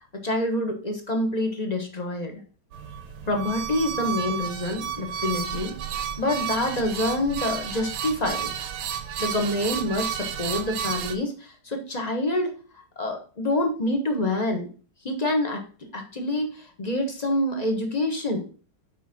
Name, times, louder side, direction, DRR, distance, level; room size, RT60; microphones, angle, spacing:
voice 1, 0.2-2.4 3.3-5.7 6.2-8.5 9.2-12.5 13.0-14.7 15.0-15.6 15.9-18.4, left 1 dB, 25° left, 3 dB, 1.2 m, -26 dB
sound 1, 2.7-11.2, right 8 dB, 85° right, 1.6 m, -32 dB
6.1 x 4.6 x 5.9 m, 0.39 s
omnidirectional pair, 2.1 m